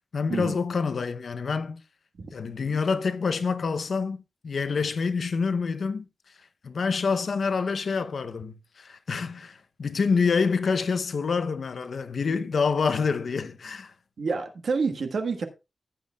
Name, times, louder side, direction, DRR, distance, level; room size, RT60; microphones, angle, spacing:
voice 1, 0.1-1.8 2.3-6.1 6.6-13.9, left 5 dB, 70° left, 0.7 m, -27 dB
voice 2, 14.2-15.4, right 4 dB, 75° right, 1.4 m, -28 dB
14.5 x 8.5 x 2.3 m
wide cardioid pair, 155°, 0 cm